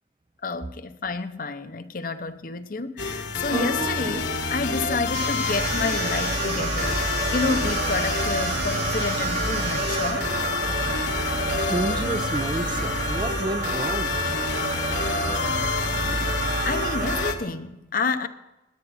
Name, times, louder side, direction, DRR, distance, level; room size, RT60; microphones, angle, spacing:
voice 1, 0.4-10.3 16.6-18.3, left 3 dB, 45° left, 0.8 m, -29 dB
sound 1, 3.0-17.4, left 4 dB, 70° left, 1.4 m, -29 dB
sound 2, 3.5-4.6 5.4-17.3, right 2 dB, 40° right, 1.1 m, -29 dB
sound 3, 5.1-10.1, right 4 dB, 90° right, 5.5 m, -34 dB
voice 2, 11.6-14.2, right 2 dB, 25° right, 0.4 m, -30 dB
17.5 x 10.5 x 4.2 m
head